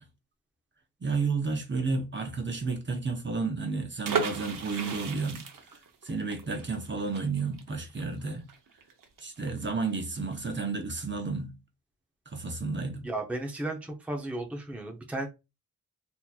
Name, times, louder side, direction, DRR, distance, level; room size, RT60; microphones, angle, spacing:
voice 1, 1.0-5.4 6.0-8.5 9.2-11.5 12.3-13.0, right 4 dB, 35° right, 0.8 m, -31 dB
sound 1, 4.0-9.7 10.0-10.1 10.3-10.6, right 5 dB, 70° right, 0.8 m, -35 dB
voice 2, 13.0-15.3, right 2 dB, 5° right, 0.7 m, -34 dB
4.1 x 2.9 x 2.3 m
wide cardioid pair, 115°, 34 cm